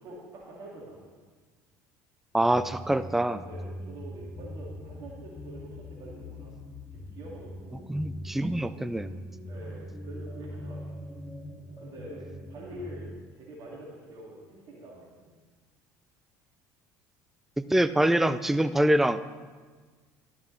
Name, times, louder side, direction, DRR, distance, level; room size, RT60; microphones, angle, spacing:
voice 1, 0.0-1.2 2.9-6.6 6.9-7.9 9.5-11.1 11.8-15.3, right 1 dB, 55° right, -3 dB, 2.2 m, -46 dB
sound 1, 2.3-13.1, left 1 dB, 15° left, 1.9 m, -42 dB
voice 2, 2.3-3.4 7.9-9.1 17.7-19.2, right 1 dB, 5° right, 13 dB, 0.4 m, -24 dB
12.0 x 6.0 x 3.2 m, 1.4 s
hypercardioid pair, 70°, 9 cm